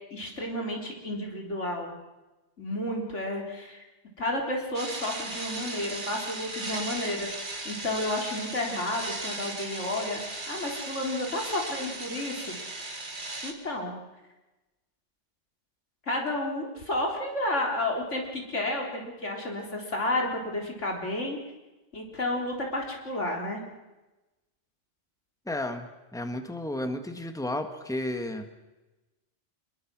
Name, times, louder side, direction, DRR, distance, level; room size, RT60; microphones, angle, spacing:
voice 1, 0.1-1.9 2.6-3.8 4.2-12.6 13.4-14.0 16.1-21.4 21.9-23.6, left 1 dB, 90° left, 0 dB, 4.1 m, -31 dB
sound 1, 4.7-13.5, right 2 dB, 45° right, 2.2 m, -37 dB
voice 2, 25.5-28.5, left 1 dB, 5° left, 6 dB, 1.7 m, -33 dB
26.0 x 21.5 x 6.2 m, 1.1 s
omnidirectional pair, 1.2 m